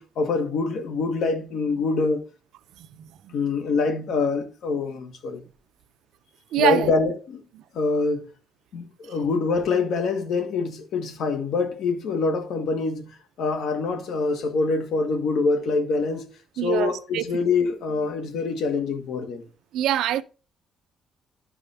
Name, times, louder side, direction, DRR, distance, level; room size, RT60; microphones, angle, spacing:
voice 1, 0.0-2.3 3.3-5.4 6.6-7.4 7.7-8.3 8.7-13.1 13.4-16.3 16.6-19.4, left 4 dB, 60° left, 1.5 m, -25 dB
voice 2, 2.8-3.3 6.5-6.9 16.6-17.2 19.7-20.2, right 12 dB, 80° right, 0.5 m, -25 dB
12.0 x 5.0 x 3.4 m
cardioid pair, 165°, 0 cm